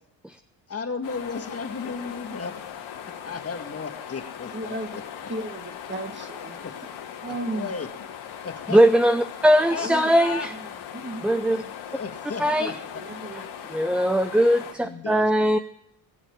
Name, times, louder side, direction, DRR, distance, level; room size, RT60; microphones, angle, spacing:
voice 1, 0.7-2.6 3.1-5.3 6.6-6.7 7.3-7.9 8.4-8.8 9.7-10.5 11.9-12.8 14.8-15.4, left 5 dB, 30° left, 7 dB, 1.9 m, -34 dB
sound 1, 1.0-14.7, left 8 dB, 80° left, 3.4 m, -39 dB
voice 2, 4.5-5.0 5.3-6.6 7.2-7.7 9.7-10.1 10.5-10.7 10.9-11.7 12.6-12.7 13.0-13.4, right 2 dB, 25° right, 7 dB, 1.9 m, -35 dB
voice 3, 8.7-10.5 11.2-11.6 12.4-12.7 13.7-15.6, equal, ahead, 10 dB, 0.6 m, -20 dB
20.5 x 7.3 x 7.1 m, 0.76 s
cardioid pair, 105°, 46 cm